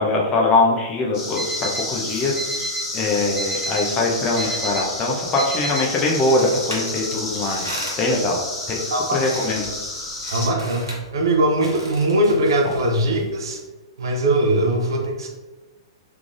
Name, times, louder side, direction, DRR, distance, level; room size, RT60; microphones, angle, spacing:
voice 1, 0.0-2.3 2.9-7.6 8.0-8.4 8.7-8.8 9.1-9.6, left 2 dB, 25° left, -1 dB, 0.7 m, -22 dB
sound 1, 1.1-10.5, left 2 dB, 45° left, 1.3 m, -30 dB
Alarm, 1.4-1.8 2.4-2.8 3.4-3.8 4.4-4.8 5.4-5.8, right 2 dB, 10° right, 0.8 m, -29 dB
sound 2, 4.1-13.6, right 1 dB, 80° right, 0.9 m, -38 dB
voice 2, 10.3-13.6 14.0-15.3, right 1 dB, 60° right, 3 dB, 0.6 m, -21 dB
3.6 x 3.3 x 2.5 m, 1.1 s
figure-of-eight pair, 110°, 3 cm